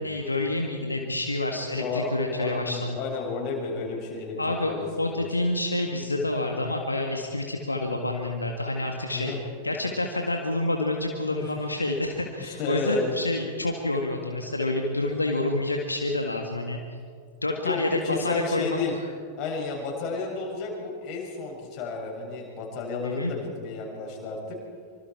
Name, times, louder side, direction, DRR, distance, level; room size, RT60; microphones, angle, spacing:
voice 1, 0.0-3.0 4.4-9.3 9.6-16.8 17.4-18.8 23.0-23.3, left 2 dB, 80° left, 2 dB, 1.9 m, -28 dB
voice 2, 1.7-5.3 9.1-9.4 11.4-11.5 12.4-13.2 17.6-18.9 19.4-24.6, left 4 dB, 40° left, -1 dB, 7.5 m, -32 dB
26.0 x 25.5 x 4.8 m, 2.1 s
figure-of-eight pair, 90°, 0 cm